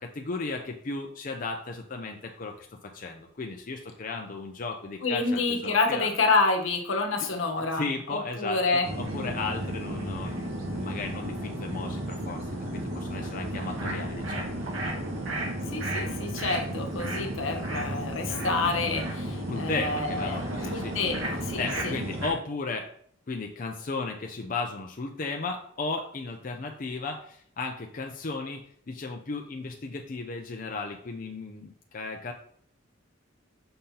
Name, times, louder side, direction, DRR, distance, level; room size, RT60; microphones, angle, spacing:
voice 1, 0.0-6.1 7.7-14.5 19.5-20.9 21.6-22.9 23.3-32.3, left 3 dB, 40° left, 3 dB, 0.5 m, -35 dB
voice 2, 5.0-8.9 15.7-20.4 20.7-21.9, left 3 dB, 75° left, 4 dB, 1.1 m, -28 dB
sound 1, 8.8-22.3, right 1 dB, 75° right, 1.8 m, -33 dB
6.6 x 5.5 x 2.8 m, 0.62 s
head